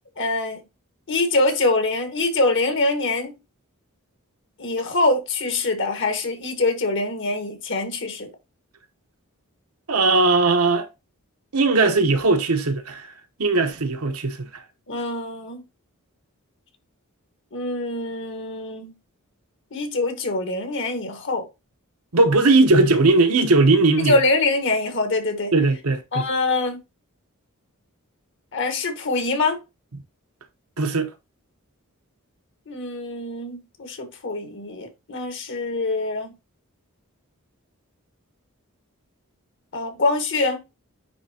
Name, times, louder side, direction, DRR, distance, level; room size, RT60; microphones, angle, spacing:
voice 1, 0.2-0.6 1.1-3.3 4.6-8.3 14.9-15.6 17.5-18.9 19.7-21.4 24.0-25.5 26.1-26.8 28.5-29.6 32.7-36.3 39.7-40.6, left 2 dB, 60° left, 1.6 m, -24 dB
voice 2, 9.9-10.9 11.5-13.1 13.4-14.5 22.1-24.2 25.5-26.3 30.8-31.1, right 3 dB, 80° right, 1.1 m, -18 dB
9.7 x 3.4 x 2.9 m
head